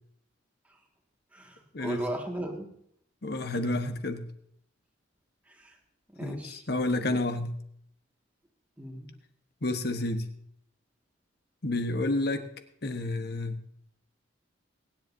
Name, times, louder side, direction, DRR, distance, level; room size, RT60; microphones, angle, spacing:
voice 1, 1.3-2.7 6.1-6.6 8.8-9.1, right 1 dB, 10° right, 0 dB, 1.9 m, -36 dB
voice 2, 3.2-4.3 6.2-7.6 9.6-10.3 11.6-12.5 12.8-13.6, left 2 dB, 50° left, 8 dB, 1.2 m, -30 dB
24.5 x 10.5 x 2.7 m, 0.68 s
head